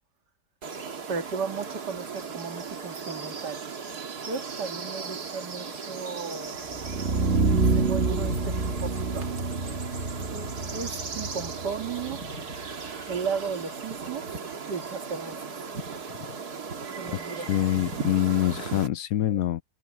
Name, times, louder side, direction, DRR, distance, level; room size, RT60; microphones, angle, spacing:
sound 1, 0.6-18.9, right 5 dB, 70° right, 2.7 m, -37 dB
voice 1, 1.1-3.6 4.3-6.6 7.8-9.3 10.3-12.2 13.1-14.2 14.7-15.4 17.0-17.5 19.3-19.4, right 5 dB, 85° right, 2.6 m, -35 dB
sound 2, 6.7-12.7, right 3 dB, 40° right, 2.2 m, -27 dB
voice 2, 17.5-19.6, left 13 dB, 65° left, 1.0 m, -25 dB
omnidirectional pair, 1.8 m